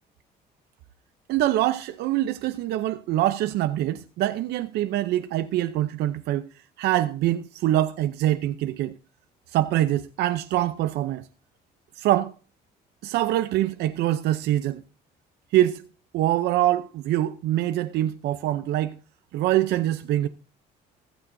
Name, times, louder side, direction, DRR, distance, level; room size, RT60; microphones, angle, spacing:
voice 1, 1.3-6.5 6.8-9.0 9.5-11.3 11.9-12.3 13.0-14.8 15.5-15.9 16.1-19.0 19.3-20.3, right 13 dB, 80° right, 0.7 m, -24 dB
16.0 x 14.0 x 2.7 m
cardioid pair, 110°, 17 cm